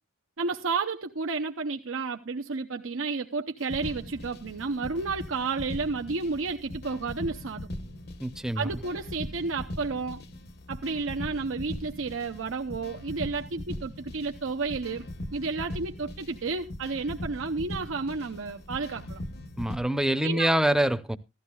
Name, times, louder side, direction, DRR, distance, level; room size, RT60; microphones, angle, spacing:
voice 1, 0.4-7.7 8.6-10.2 10.7-19.2 20.2-20.5, right 4 dB, 75° right, 0.7 m, -31 dB
sound 1, 3.6-19.8, left 1 dB, 55° left, 1.0 m, -40 dB
voice 2, 8.2-8.8 19.6-21.2, right 1 dB, 5° right, 0.6 m, -25 dB
16.0 x 13.0 x 2.3 m
head